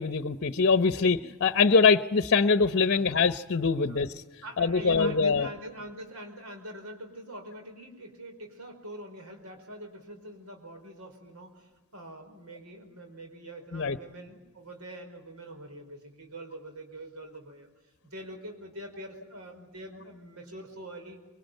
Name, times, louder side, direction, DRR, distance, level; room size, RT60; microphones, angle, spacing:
voice 1, 0.0-4.1 4.6-5.5 13.7-14.0, left 4 dB, 50° left, 11 dB, 0.8 m, -23 dB
voice 2, 4.4-17.7 18.0-21.2, right 1 dB, 80° right, 4 dB, 4.8 m, -44 dB
24.5 x 23.5 x 9.1 m, 1.2 s
head